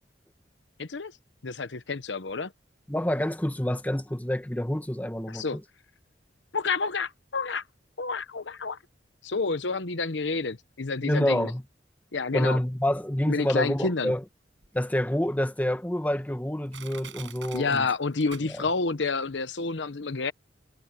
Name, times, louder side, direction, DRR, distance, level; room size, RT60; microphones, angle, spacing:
voice 1, 0.8-1.1 1.4-2.5 5.3-5.6 6.5-7.6 8.0-8.8 9.2-11.5 12.1-12.6 13.3-14.1 17.5-20.3, left 4 dB, 75° left, 1.0 m, -29 dB
voice 2, 2.9-5.6 11.0-11.6 12.3-14.2 14.7-17.9 18.5-18.6, left 1 dB, 10° left, 1.1 m, -27 dB
Crushing, 14.6-14.7 15.4-15.5 16.1-16.2 16.7-18.9 19.2-19.3, right 8 dB, 85° right, 6.1 m, -45 dB
head